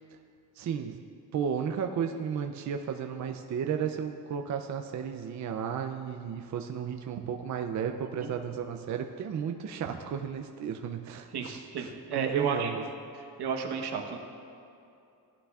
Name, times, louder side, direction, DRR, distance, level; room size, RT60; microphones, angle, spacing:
voice 1, 0.6-1.0 1.3-12.8, right 7 dB, 45° right, 4 dB, 0.5 m, -34 dB
voice 2, 11.3-12.8 13.4-14.2, right 6 dB, 75° right, 2 dB, 1.1 m, -32 dB
17.0 x 11.5 x 2.4 m, 2.6 s
wide cardioid pair, 175°, 39 cm